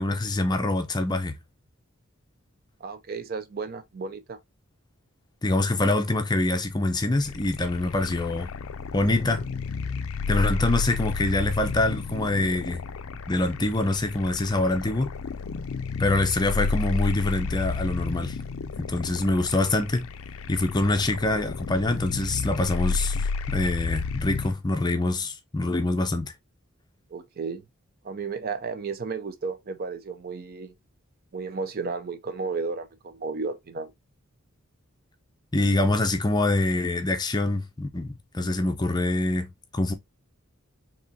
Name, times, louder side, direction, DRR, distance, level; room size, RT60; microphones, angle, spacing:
voice 1, 0.0-1.3 5.4-8.5 8.9-9.5 10.3-12.8 13.3-15.1 16.0-18.4 18.8-20.1 20.5-26.3 35.5-39.9, left 2 dB, 20° left, 0.6 m, -25 dB
voice 2, 2.8-4.4 27.1-27.6 28.0-30.7 31.3-33.9, right 4 dB, 45° right, 0.5 m, -33 dB
sound 1, 7.2-24.5, left 4 dB, 75° left, 0.4 m, -32 dB
4.8 x 3.0 x 2.7 m
head